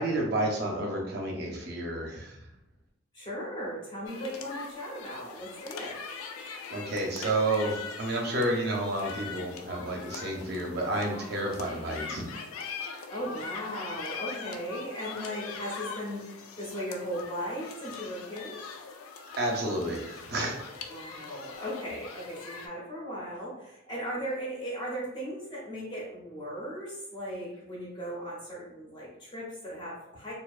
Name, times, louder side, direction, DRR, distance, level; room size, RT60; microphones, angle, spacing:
voice 1, 0.0-2.3 6.7-12.2 19.4-20.7, right 1 dB, 50° right, 0 dB, 0.5 m, -30 dB
voice 2, 3.1-6.0 11.6-12.1 13.1-18.6 20.9-30.3, equal, 20° left, -5 dB, 0.5 m, -37 dB
sound 1, 4.1-22.7, left 5 dB, 85° left, 0.3 m, -42 dB
2.5 x 2.1 x 2.3 m, 0.86 s
head